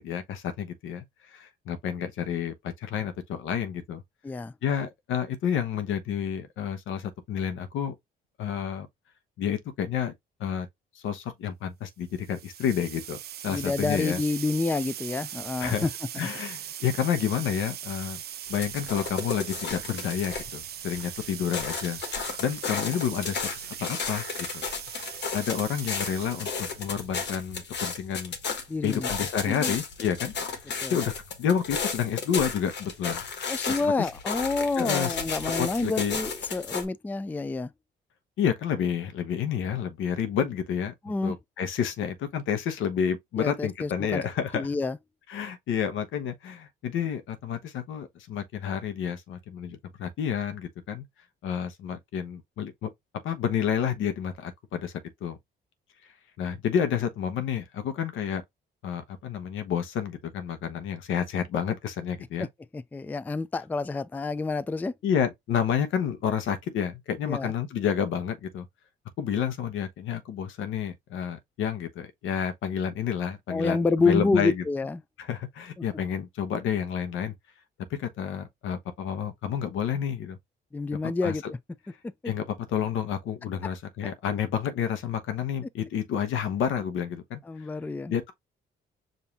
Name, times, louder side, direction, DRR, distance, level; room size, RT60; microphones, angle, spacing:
voice 1, 0.0-4.0 4.6-8.0 8.4-8.9 9.4-10.1 10.4-10.7 10.9-13.2 13.4-14.2 15.6-15.9 16.2-18.2 18.5-22.0 22.4-24.2 24.5-24.7 25.3-28.4 28.8-30.3 30.9-31.1 31.4-33.2 33.8-34.1 34.8-35.2 35.6-36.2 38.4-40.9 41.2-44.7 45.3-51.0 51.4-52.9 53.2-54.9 55.2-55.4 56.4-58.4 58.8-62.5 65.0-68.7 69.2-74.6 75.2-77.3 77.9-80.4 81.2-81.3 82.2-87.4 88.1-88.3, left 8 dB, 80° left, 1.0 m, -30 dB
sound 1, 12.2-27.1, right 11 dB, 55° right, 0.5 m, -40 dB
voice 2, 13.5-15.9 16.2-16.3 28.7-29.2 29.5-29.7 30.8-31.0 33.4-37.7 41.0-41.3 43.4-44.2 44.5-45.0 62.4-62.5 62.7-64.9 67.2-67.5 73.5-75.0 80.7-81.6 87.5-88.1, left 3 dB, 10° left, 0.3 m, -28 dB
sound 2, 18.5-20.6 20.9-36.8, left 5 dB, 60° left, 1.4 m, -34 dB
5.2 x 2.7 x 2.8 m
cardioid pair, 90°, 20 cm